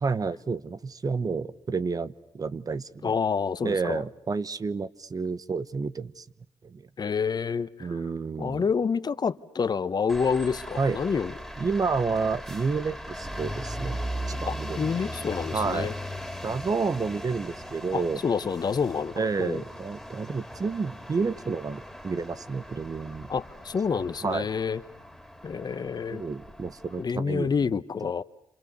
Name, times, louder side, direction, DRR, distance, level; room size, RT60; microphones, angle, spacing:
voice 1, 0.0-3.1 3.6-6.2 6.6-6.9 7.8-8.7 10.8-11.0 11.6-14.0 14.3-15.0 15.5-15.9 16.4-18.2 19.2-23.3 24.2-24.5 26.1-27.5, right 4 dB, 40° right, 1.1 m, -30 dB
voice 2, 3.0-4.0 7.0-7.9 8.4-11.3 14.5-15.9 17.9-19.6 23.3-24.8 25.4-26.2 27.0-28.2, left 6 dB, 45° left, 1.0 m, -28 dB
sound 1, 10.1-27.0, equal, ahead, 4.3 m, -39 dB
29.5 x 27.5 x 6.9 m
supercardioid pair, 50°, 9 cm